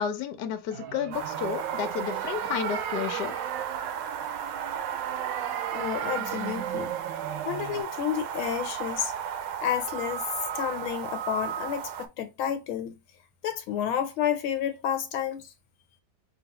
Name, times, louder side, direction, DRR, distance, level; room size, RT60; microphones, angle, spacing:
voice 1, 0.0-3.4, left 8 dB, 65° left, 1.2 m, -31 dB
sound 1, 0.7-7.8, right 11 dB, 75° right, 1.2 m, -36 dB
sound 2, 1.1-12.1, right 9 dB, 90° right, 1.5 m, -34 dB
voice 2, 5.7-6.9 7.5-9.1 9.6-10.2 10.5-12.9 13.4-15.5, left 9 dB, 80° left, 1.6 m, -30 dB
4.8 x 3.2 x 2.9 m
omnidirectional pair, 2.2 m